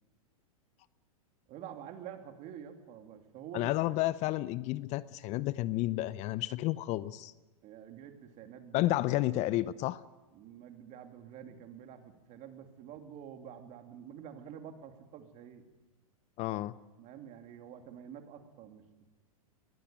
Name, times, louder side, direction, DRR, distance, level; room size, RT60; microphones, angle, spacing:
voice 1, 1.5-3.7 7.6-8.9 10.3-15.6 17.0-18.8, right 9 dB, 40° right, 5 dB, 2.9 m, -48 dB
voice 2, 3.5-7.3 8.7-10.0 16.4-16.7, left 16 dB, 35° left, 18 dB, 0.7 m, -31 dB
21.5 x 17.5 x 9.2 m, 1.2 s
hypercardioid pair, 110°, 19 cm